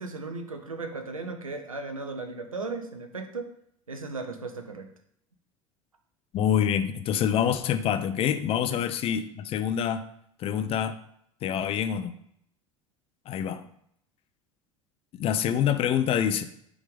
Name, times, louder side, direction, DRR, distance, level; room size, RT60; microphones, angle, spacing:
voice 1, 0.0-3.5 3.9-4.9 8.7-8.8, right 3 dB, 85° right, 6 dB, 0.7 m, -36 dB
voice 2, 6.3-10.0 10.4-11.0 11.4-12.1 13.3-13.6 15.2-16.4, left 9 dB, 35° left, 10 dB, 0.5 m, -26 dB
5.2 x 3.6 x 5.0 m, 0.71 s
figure-of-eight pair, 75°, 17 cm